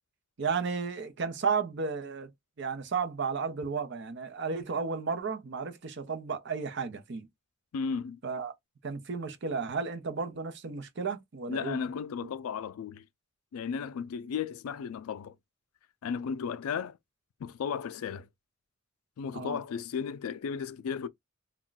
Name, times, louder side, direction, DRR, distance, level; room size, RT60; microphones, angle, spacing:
voice 1, 0.4-2.3 2.6-7.3 8.2-8.5 8.8-11.8 19.3-19.6, right 5 dB, 55° right, 0.6 m, -33 dB
voice 2, 7.7-8.2 11.5-13.0 13.5-15.4 16.0-17.0 17.4-18.3 19.2-21.1, left 6 dB, 85° left, 0.3 m, -34 dB
2.3 x 2.2 x 3.8 m
head